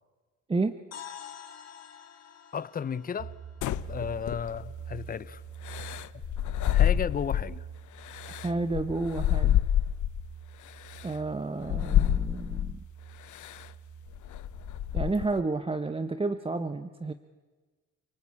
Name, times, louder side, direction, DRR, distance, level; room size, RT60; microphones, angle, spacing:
sound 1, 0.9-4.9, left 9 dB, 55° left, 2.8 m, -48 dB
voice 1, 2.5-3.4 3.9-5.4 6.7-7.7, left 7 dB, 30° left, 0.7 m, -33 dB
sound 2, 3.2-15.1, right 8 dB, 55° right, 4.5 m, -46 dB
sound 3, 3.6-4.8 5.6-7.6 8.0-10.3 10.9-11.0 11.6-12.8 13.3-13.7 14.1-15.4, left 11 dB, 70° left, 0.8 m, -28 dB
voice 2, 8.4-9.6 11.0-12.8 14.9-17.1, right 3 dB, 20° right, 1.0 m, -31 dB
29.0 x 19.0 x 8.5 m
cardioid pair, 90°, 31 cm